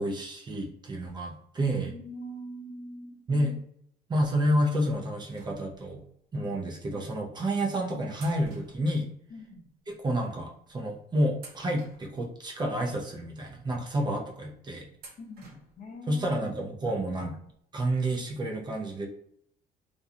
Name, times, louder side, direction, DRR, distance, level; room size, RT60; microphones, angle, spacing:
voice 1, 0.0-1.9 3.3-3.6 4.1-6.0 6.3-9.1 9.9-14.9 16.1-17.3 17.7-19.1, right 1 dB, 25° right, 0 dB, 0.5 m, -29 dB
voice 2, 1.8-3.3 6.4-6.5 9.3-9.7 15.2-16.3 16.8-17.0, equal, 50° left, 0 dB, 0.7 m, -43 dB
sound 1, 5.3-6.1 6.9-7.1 8.1-9.6 9.9-10.0 10.7-10.9 11.3-12.7 13.2-13.3 15.0-15.9 16.2-16.3 17.5-17.6 17.9-18.0, right 3 dB, 65° right, 0.8 m, -53 dB
2.5 x 2.2 x 2.7 m, 0.67 s
cardioid pair, 110°, 17 cm